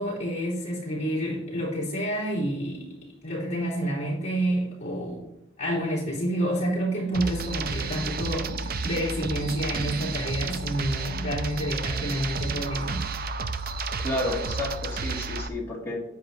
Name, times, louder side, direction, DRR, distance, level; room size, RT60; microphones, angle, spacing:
voice 1, 0.0-2.9 3.2-5.2 5.6-13.1, equal, 35° left, -6 dB, 3.6 m, -29 dB
sound 1, 7.1-15.5, right 4 dB, 45° right, 0.5 m, -31 dB
voice 2, 14.0-16.0, left 1 dB, 15° left, -5 dB, 2.3 m, -31 dB
10.0 x 7.8 x 2.8 m, 0.85 s
head